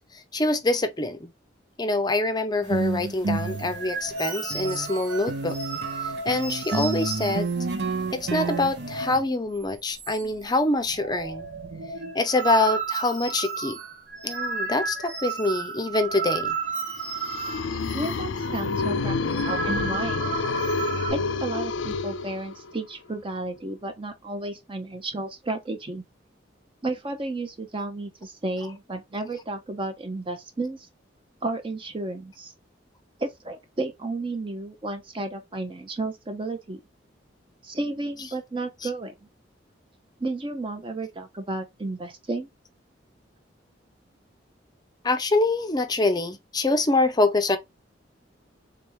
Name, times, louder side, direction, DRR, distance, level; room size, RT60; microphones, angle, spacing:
voice 1, 0.1-1.3 1.8-5.6 6.0-7.5 8.1-11.5 12.1-13.8 14.2-16.5 38.8-38.9 45.0-47.6, left 2 dB, 20° left, 0.6 m, -25 dB
sound 1, 2.6-4.9 5.3-9.2, right 3 dB, 65° right, 0.8 m, -30 dB
sound 2, 3.3-9.3 9.6-9.7 10.0-10.5 10.8-18.2 18.4-18.7 19.1-21.1, right 5 dB, 80° right, 1.2 m, -33 dB
sound 3, 16.9-22.8, left 4 dB, 85° left, 0.5 m, -28 dB
voice 2, 17.9-19.2 19.4-20.2 21.1-26.0 26.8-30.9 31.4-32.5 33.2-36.8 37.6-39.1 40.2-42.5, right 2 dB, 30° right, 0.6 m, -32 dB
3.5 x 3.5 x 3.0 m
head